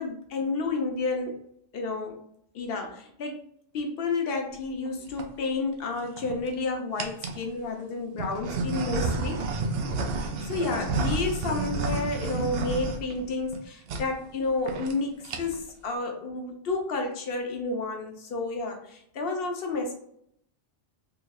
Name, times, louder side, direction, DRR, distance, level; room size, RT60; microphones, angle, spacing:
voice 1, 0.0-1.3 1.7-2.2 2.5-3.4 3.7-9.4 10.1-20.0, left 3 dB, 55° left, 3 dB, 0.9 m, -31 dB
sound 1, 4.9-5.3 6.0-6.5 7.0-7.4 8.2-13.6 13.9-14.1 14.4-14.5 14.7-14.9 15.2-15.7, right 3 dB, 65° right, 0.6 m, -31 dB
3.5 x 3.2 x 2.3 m, 0.70 s
omnidirectional pair, 1.3 m